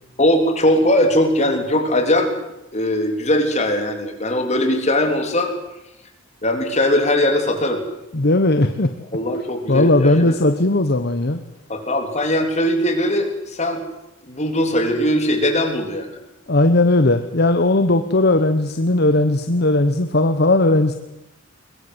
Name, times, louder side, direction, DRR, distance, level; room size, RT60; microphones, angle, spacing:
voice 1, 0.2-2.3 2.7-5.5 6.4-7.8 9.1-10.4 11.7-13.8 14.2-16.2, left 1 dB, 35° left, 4 dB, 3.6 m, -20 dB
voice 2, 8.1-8.9 9.7-11.4 16.5-20.9, left 2 dB, 50° left, 9 dB, 1.1 m, -17 dB
22.0 x 21.5 x 8.0 m, 0.91 s
head